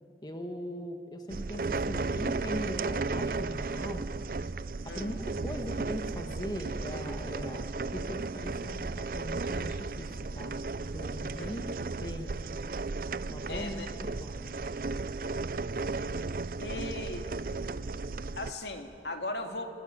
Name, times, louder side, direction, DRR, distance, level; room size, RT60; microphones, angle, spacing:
voice 1, 0.2-4.1 4.8-10.6 10.9-11.7 12.0-12.4 13.3-14.5, equal, 25° left, 4 dB, 1.6 m, -40 dB
sound 1, 1.3-18.5, right 3 dB, 55° right, 0.5 m, -35 dB
voice 2, 13.5-13.9 16.6-17.3 18.4-19.6, left 2 dB, 75° left, 5 dB, 2.3 m, -37 dB
28.0 x 18.5 x 9.6 m, 2.8 s
head